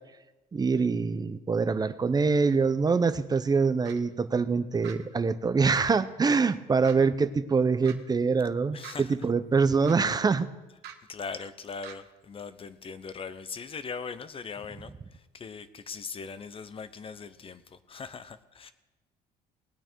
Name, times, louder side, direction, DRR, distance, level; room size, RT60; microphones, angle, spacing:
voice 1, 0.5-10.5, right 4 dB, 25° right, 13 dB, 0.7 m, -25 dB
sound 1, 3.8-4.0 4.8-5.0 5.8-6.0 6.8-6.9 7.8-8.0 8.8-9.0 9.8-10.0 10.8-11.0 11.8-12.0, right 10 dB, 75° right, 1.3 m, -43 dB
voice 2, 8.7-9.3 11.1-18.7, left 5 dB, 35° left, 13 dB, 0.8 m, -40 dB
19.0 x 8.9 x 4.6 m, 1.1 s
cardioid pair, 110°, 17 cm